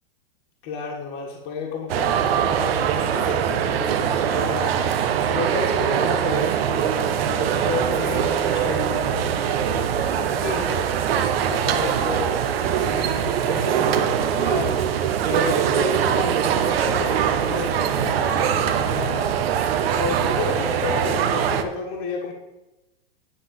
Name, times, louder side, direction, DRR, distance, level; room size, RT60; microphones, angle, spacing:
voice 1, 0.6-19.3 19.9-22.3, left 4 dB, 45° left, 0 dB, 1.7 m, -32 dB
sound 1, 1.9-21.6, right 8 dB, 75° right, 1.0 m, -22 dB
10.0 x 4.1 x 7.6 m, 0.99 s
supercardioid pair, 150°, 30 cm